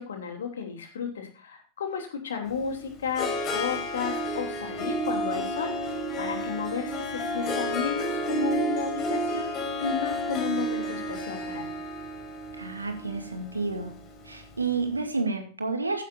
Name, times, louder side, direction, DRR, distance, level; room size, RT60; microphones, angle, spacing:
voice 1, 0.0-11.6, left 6 dB, 65° left, 4 dB, 3.0 m, -33 dB
Harp, 2.5-14.6, equal, 30° left, 3.9 m, -31 dB
voice 2, 12.6-13.9 14.2-16.0, right 3 dB, 80° right, 5 dB, 2.4 m, -30 dB
15.0 x 10.0 x 2.6 m, 0.36 s
figure-of-eight pair, 90°, 0 cm